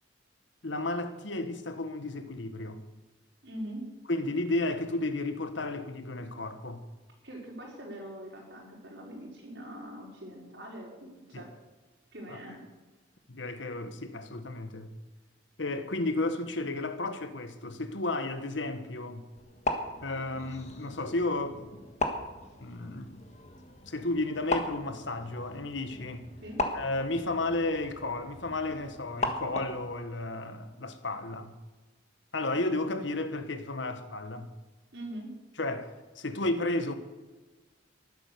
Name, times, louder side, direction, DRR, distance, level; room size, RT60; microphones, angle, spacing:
voice 1, 0.6-2.8 4.1-6.8 11.3-11.4 12.3-12.4 13.3-14.9 15.6-19.2 20.0-21.8 22.6-23.2 23.9-26.3 26.7-31.5 32.3-34.5 35.6-37.0, left 2 dB, 75° left, 1.4 m, -33 dB
voice 2, 3.4-3.9 7.2-11.5 12.1-12.7 26.4-26.7 34.9-35.4, right 1 dB, 65° right, 5.1 m, -42 dB
sound 1, 19.4-29.9, left 2 dB, 35° left, 1.6 m, -37 dB
13.5 x 12.0 x 6.9 m
head